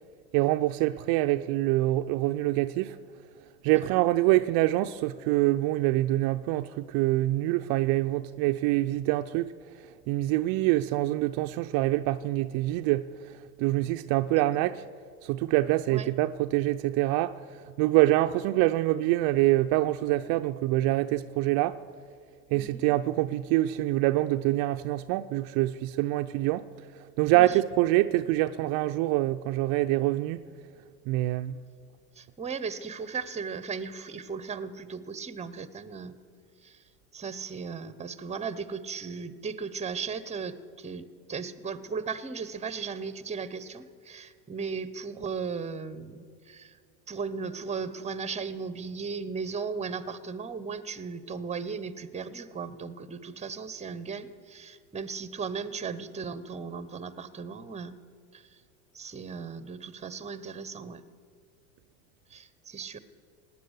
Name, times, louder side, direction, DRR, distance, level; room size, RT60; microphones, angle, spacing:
voice 1, 0.3-3.0 3.6-9.5 10.1-14.8 15.2-21.8 22.5-26.7 27.2-30.4 31.1-31.6, right 16 dB, 50° right, 0.5 m, -25 dB
voice 2, 22.5-22.8 27.3-27.6 32.2-36.2 36.6-36.8 37.1-46.7 47.1-58.0 58.3-58.5 58.9-61.0 62.3-63.0, right 5 dB, 15° right, 0.9 m, -36 dB
17.0 x 9.6 x 8.1 m
hypercardioid pair, 95°, 46 cm